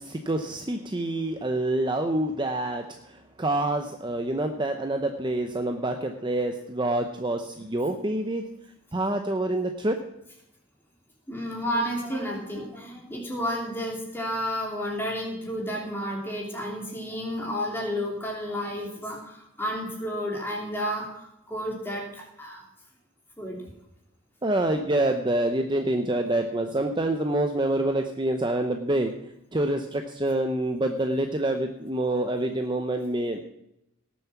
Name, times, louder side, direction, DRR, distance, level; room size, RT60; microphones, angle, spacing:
voice 1, 0.0-2.8 3.4-8.5 8.9-10.0 24.4-29.1 29.5-33.4, right 1 dB, 20° right, 5 dB, 0.7 m, -26 dB
voice 2, 11.3-22.6 23.4-23.7, equal, 10° left, -2 dB, 3.0 m, -31 dB
18.0 x 7.2 x 5.9 m, 0.81 s
head